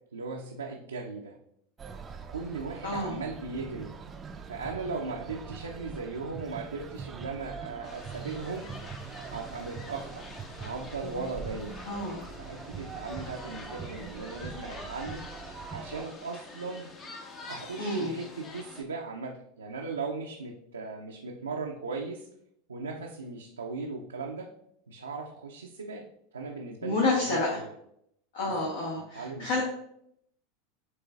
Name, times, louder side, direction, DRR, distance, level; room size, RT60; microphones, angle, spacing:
voice 1, 0.1-1.4 2.3-3.9 4.5-8.7 9.3-10.2 10.6-11.8 12.4-15.2 15.7-16.9 17.5-19.3 19.6-22.3 22.7-24.5 24.9-26.0 26.3-27.6 28.4-28.7 28.9-29.5, right 4 dB, 85° right, -1 dB, 0.5 m, -38 dB
sound 1, 1.8-16.1, right 5 dB, 25° right, 0.4 m, -43 dB
voice 2, 2.8-3.1 11.9-12.2 17.8-18.2 26.8-27.6 28.3-29.6, left 2 dB, 65° left, -3 dB, 1.0 m, -29 dB
sound 2, 7.8-18.8, left 3 dB, 30° left, 0.7 m, -46 dB
7.3 x 3.1 x 2.3 m, 0.73 s
figure-of-eight pair, 85°, 0 cm